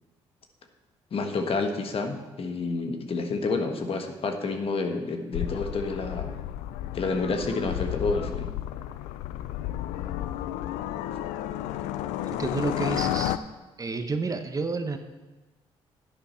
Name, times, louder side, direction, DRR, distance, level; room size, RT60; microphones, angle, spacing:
voice 1, 1.1-6.3 6.9-8.5, left 3 dB, 50° left, 6 dB, 1.4 m, -29 dB
sound 1, 5.3-13.4, left 12 dB, 90° left, 0.4 m, -32 dB
voice 2, 12.2-13.4 13.8-15.0, right 3 dB, 30° right, 8 dB, 1.0 m, -30 dB
10.5 x 9.1 x 4.4 m, 1.2 s
supercardioid pair, 70°, 12 cm